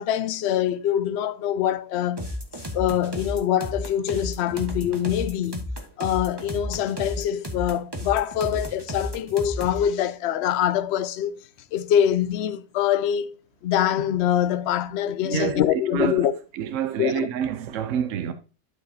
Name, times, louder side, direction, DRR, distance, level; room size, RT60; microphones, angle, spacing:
voice 1, 0.0-2.3 2.7-5.7 6.0-11.4 11.7-13.3 13.6-16.3 17.0-17.3, left 10 dB, 65° left, 0.7 m, -24 dB
sound 1, 2.2-9.8, left 1 dB, 20° right, 1.2 m, -33 dB
voice 2, 15.2-16.3 16.5-18.3, right 9 dB, 80° right, 1.0 m, -27 dB
12.0 x 4.9 x 2.7 m
omnidirectional pair, 1.3 m